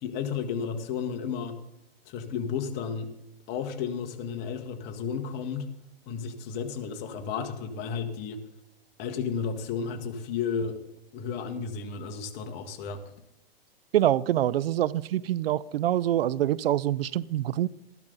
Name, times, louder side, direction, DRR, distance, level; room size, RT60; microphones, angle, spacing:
voice 1, 0.0-1.6 2.1-3.1 3.5-5.7 6.1-8.4 9.0-10.7 11.1-13.0, left 6 dB, 35° left, 6 dB, 1.6 m, -33 dB
voice 2, 13.9-17.7, right 12 dB, 75° right, 20 dB, 0.5 m, -25 dB
14.0 x 12.0 x 4.0 m, 0.88 s
hypercardioid pair, 130°, 30 cm